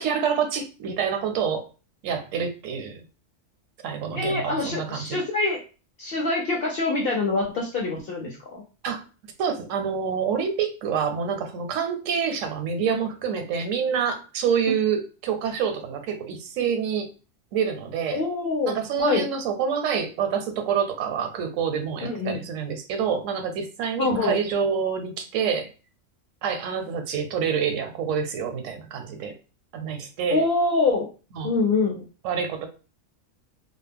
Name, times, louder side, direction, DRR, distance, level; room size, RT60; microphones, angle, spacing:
voice 1, 0.0-1.7 2.0-3.0 3.8-5.2 8.8-9.0 9.4-17.1 17.5-18.2 18.6-25.7 26.4-29.3 29.7-30.4 31.3-31.5 32.2-32.7, right 7 dB, 80° right, 7 dB, 0.9 m, -27 dB
voice 2, 4.1-5.6 6.0-8.6 18.1-19.2 22.0-22.5 24.0-24.4 30.3-31.1 31.4-32.0, left 3 dB, 60° left, -1 dB, 0.7 m, -25 dB
2.3 x 2.0 x 3.4 m, 0.34 s
omnidirectional pair, 1.3 m